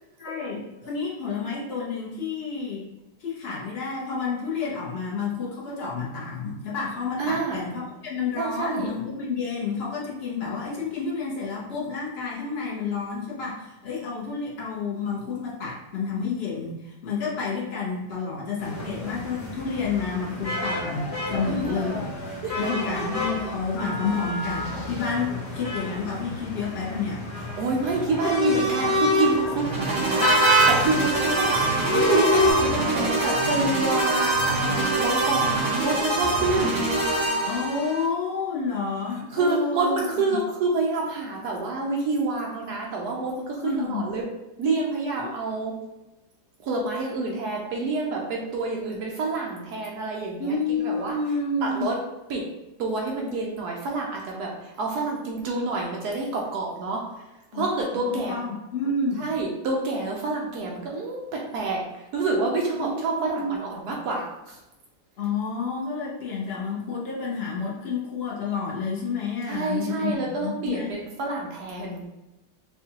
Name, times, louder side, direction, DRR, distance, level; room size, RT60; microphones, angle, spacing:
voice 1, 0.2-2.8 3.2-22.1 22.6-27.2 37.4-40.4 43.6-44.1 45.2-45.4 50.4-51.9 57.5-57.6 58.1-59.3 62.8-62.9 63.3-63.5 65.2-70.9, left 4 dB, 75° left, -4 dB, 0.5 m, -30 dB
voice 2, 7.2-7.6 8.4-8.9 21.4-21.8 22.4-22.6 27.6-37.1 39.3-44.2 44.6-45.7 46.6-51.2 51.6-52.0 52.3-52.4 52.8-57.0 57.5-58.4 59.2-61.8 62.1-64.6 69.5-72.1, right 3 dB, 70° right, -1 dB, 1.0 m, -27 dB
sound 1, 18.6-32.5, equal, 40° left, 1.1 m, -27 dB
sound 2, 29.5-38.0, right 2 dB, 45° right, 1.8 m, -25 dB
4.7 x 2.3 x 2.9 m, 0.99 s
omnidirectional pair, 2.1 m